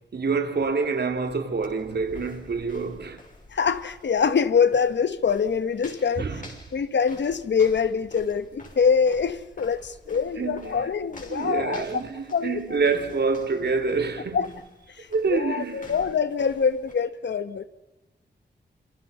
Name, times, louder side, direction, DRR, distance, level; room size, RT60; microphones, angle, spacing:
voice 1, 0.1-3.2 6.2-6.5 10.1-10.9 11.3-14.5 15.1-16.0, right 4 dB, 65° right, 2.9 m, -27 dB
sound 1, 0.6-16.9, left 2 dB, 45° left, 6.2 m, -49 dB
voice 2, 3.5-6.3 6.7-11.8 12.3-12.8 14.3-14.5 15.0-17.6, left 6 dB, 80° left, 1.3 m, -24 dB
27.0 x 27.0 x 5.6 m
wide cardioid pair, 75°, 18 cm